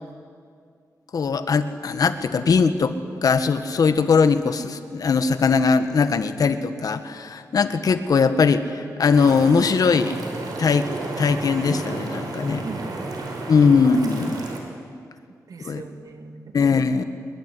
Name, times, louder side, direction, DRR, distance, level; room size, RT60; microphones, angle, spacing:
voice 1, 1.1-2.9 3.2-10.1 10.6-10.9 11.2-12.6 13.5-14.3 15.6-15.8 16.5-17.0, left 5 dB, 70° left, 10 dB, 1.5 m, -20 dB
sound 1, 9.1-14.6, right 2 dB, 85° right, 5.0 m, -32 dB
voice 2, 12.6-13.7 15.5-16.6, right 3 dB, 65° right, 6 dB, 2.5 m, -40 dB
26.5 x 22.0 x 9.8 m, 2.2 s
wide cardioid pair, 115°, 7 cm